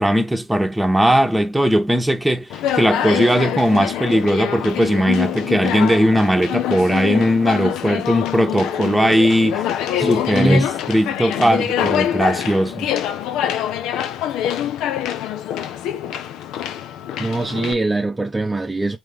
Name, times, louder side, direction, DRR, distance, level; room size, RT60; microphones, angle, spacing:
voice 1, 0.0-9.7 10.0-12.9, equal, 10° right, 1.1 m, -18 dB
Conversation, 2.5-17.7, left 10 dB, 85° left, 0.5 m, -25 dB
voice 2, 10.0-10.7 11.4-11.6 17.2-19.0, right 2 dB, 25° right, 0.7 m, -22 dB
3.8 x 2.9 x 3.3 m
supercardioid pair, 50°, 0 cm